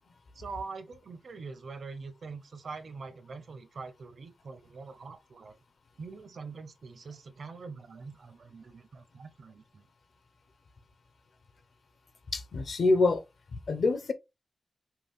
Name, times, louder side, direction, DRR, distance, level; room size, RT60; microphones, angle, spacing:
voice 1, 0.3-5.6 6.0-9.9, right 4 dB, 55° right, 0.8 m, -44 dB
voice 2, 12.3-13.2 13.5-14.1, left 3 dB, 55° left, 0.8 m, -26 dB
5.8 x 2.4 x 3.5 m
wide cardioid pair, 175°, 0 cm